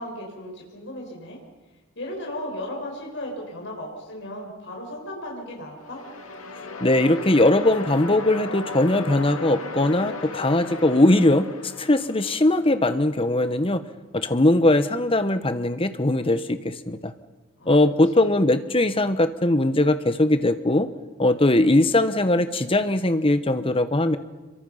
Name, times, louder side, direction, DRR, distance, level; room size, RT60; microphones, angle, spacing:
voice 1, 0.0-1.4 2.0-6.0 17.6-17.7 18.1-18.3, left 1 dB, 60° left, -1 dB, 5.7 m, -35 dB
sound 1, 5.8-12.8, left 3 dB, 80° left, 2.5 m, -36 dB
voice 2, 6.8-11.5 11.8-13.8 14.1-17.1 17.7-20.9 21.2-24.2, left 1 dB, 25° left, 11 dB, 1.1 m, -20 dB
27.0 x 23.5 x 5.7 m, 1.2 s
head